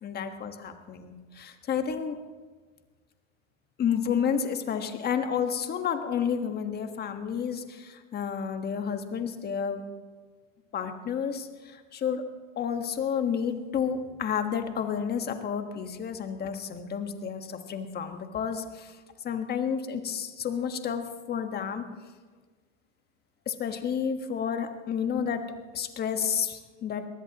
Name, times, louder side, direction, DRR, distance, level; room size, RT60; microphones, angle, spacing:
voice 1, 0.0-2.2 3.8-9.9 10.7-12.2 12.6-18.9 19.2-21.8 23.5-25.4 25.7-27.1, left 7 dB, 25° left, 6 dB, 1.5 m, -30 dB
22.5 x 18.5 x 3.0 m, 1.4 s
supercardioid pair, 130°, 39 cm